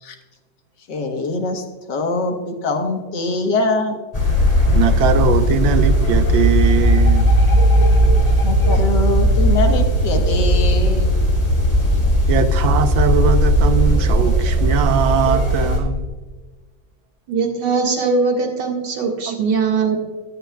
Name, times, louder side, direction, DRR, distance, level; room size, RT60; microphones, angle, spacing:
voice 1, 0.9-4.0 8.4-11.2, left 3 dB, 65° left, 4 dB, 1.9 m, -23 dB
sound 1, 4.1-15.8, equal, 20° left, 2.6 m, -16 dB
voice 2, 4.7-7.3 12.3-16.1 19.3-19.4, right 7 dB, 90° right, 10 dB, 1.5 m, -20 dB
voice 3, 17.3-20.0, right 4 dB, 65° right, 1 dB, 2.4 m, -20 dB
17.5 x 9.9 x 2.3 m, 1.3 s
omnidirectional pair, 2.0 m